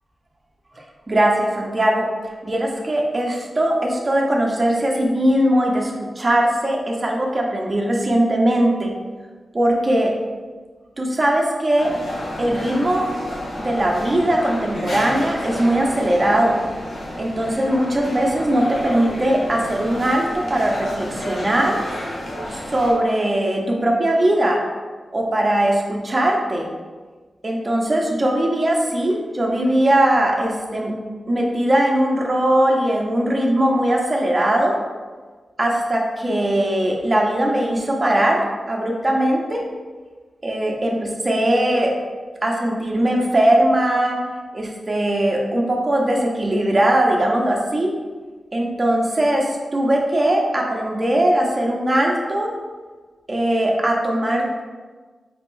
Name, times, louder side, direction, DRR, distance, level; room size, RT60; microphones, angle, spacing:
voice 1, 0.7-2.1 2.4-8.9 9.5-10.2 11.0-12.0 12.4-13.1 13.6-16.6 17.2-21.8 22.5-24.7 25.1-26.7 27.4-30.9 31.3-34.8 35.6-39.6 40.4-42.0 42.4-44.3 44.5-47.9 48.5-52.5 53.3-54.6, right 1 dB, 30° right, 0 dB, 0.8 m, -20 dB
sound 1, 11.8-22.9, left 1 dB, 60° left, 0.9 m, -31 dB
4.3 x 3.4 x 3.1 m, 1.4 s
cardioid pair, 70°, 0 cm